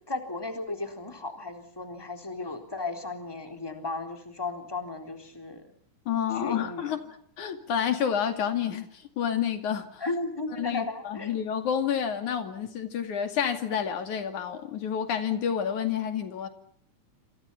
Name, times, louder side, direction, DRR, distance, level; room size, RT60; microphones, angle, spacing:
voice 1, 0.1-5.6 6.3-6.9 10.0-11.3, left 3 dB, 10° left, 5 dB, 3.7 m, -35 dB
voice 2, 6.1-7.0 7.4-10.0 10.6-16.5, left 8 dB, 85° left, 7 dB, 3.9 m, -29 dB
28.0 x 27.0 x 5.8 m, 0.63 s
omnidirectional pair, 3.3 m